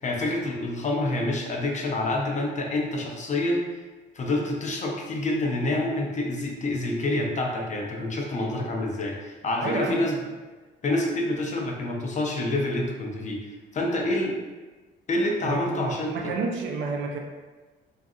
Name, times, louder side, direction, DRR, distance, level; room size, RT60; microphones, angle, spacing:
voice 1, 0.0-3.7 4.1-10.2 10.8-14.4 15.1-16.1, left 2 dB, 35° left, 0 dB, 0.5 m, -27 dB
voice 2, 9.6-10.1 15.4-17.2, right 3 dB, 75° right, 1 dB, 0.5 m, -30 dB
2.6 x 2.4 x 2.4 m, 1.3 s
cardioid pair, 90°, 20 cm